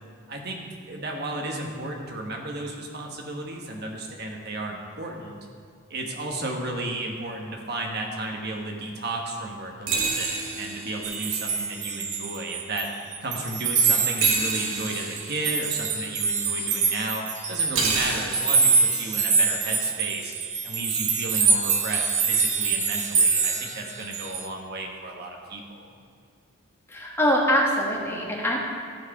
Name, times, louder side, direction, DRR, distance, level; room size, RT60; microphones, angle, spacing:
voice 1, 0.3-0.6 0.9-5.4 5.9-12.9 13.2-17.2 17.5-20.3 20.6-25.9, right 2 dB, 50° right, 1 dB, 1.2 m, -33 dB
sound 1, 9.9-11.6 14.2-15.7 17.8-18.7, right 4 dB, 70° right, 1.1 m, -29 dB
sound 2, 11.0-12.9 13.1-24.5, right 5 dB, 35° right, 0.6 m, -25 dB
voice 2, 26.9-28.6, equal, 10° left, -3 dB, 1.4 m, -23 dB
14.0 x 4.7 x 4.8 m, 2.3 s
head